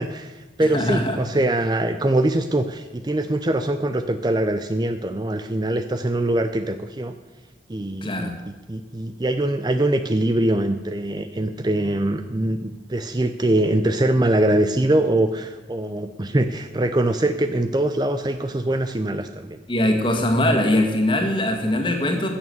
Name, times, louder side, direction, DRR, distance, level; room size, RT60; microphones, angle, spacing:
voice 1, 0.0-7.1 7.7-8.3 8.7-19.6, right 1 dB, 25° right, 8 dB, 0.5 m, -23 dB
voice 2, 0.7-1.2 8.0-8.3 19.7-22.3, left 1 dB, 25° left, 3 dB, 1.9 m, -21 dB
14.0 x 7.1 x 7.9 m, 1.2 s
head